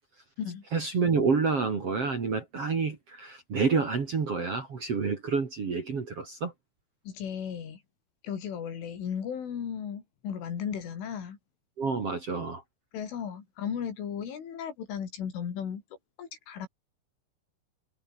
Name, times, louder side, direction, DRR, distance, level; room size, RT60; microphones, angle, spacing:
voice 1, 0.7-6.5 11.8-12.6, right 5 dB, 40° right, 2.8 m, -28 dB
voice 2, 7.1-7.8 8.2-11.4 12.9-15.8 16.2-16.7, left 8 dB, 75° left, 6.4 m, -35 dB
omnidirectional pair, 5.6 m